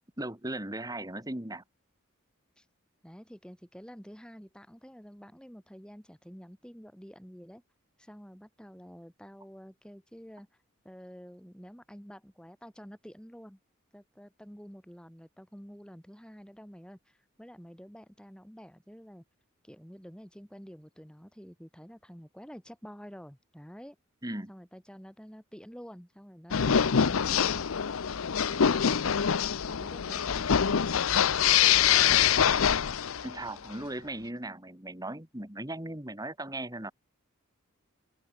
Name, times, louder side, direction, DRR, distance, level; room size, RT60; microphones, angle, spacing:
voice 1, 0.2-1.6 24.2-24.5 33.2-36.9, right 1 dB, 20° right, 2.6 m, -37 dB
voice 2, 3.0-7.6 8.0-10.5 10.8-13.6 13.9-19.2 19.6-24.0 24.5-27.7 29.7-30.8, equal, 5° left, 6.1 m, -49 dB
sound 1, 26.5-33.4, left 8 dB, 80° left, 0.6 m, -25 dB
open air
head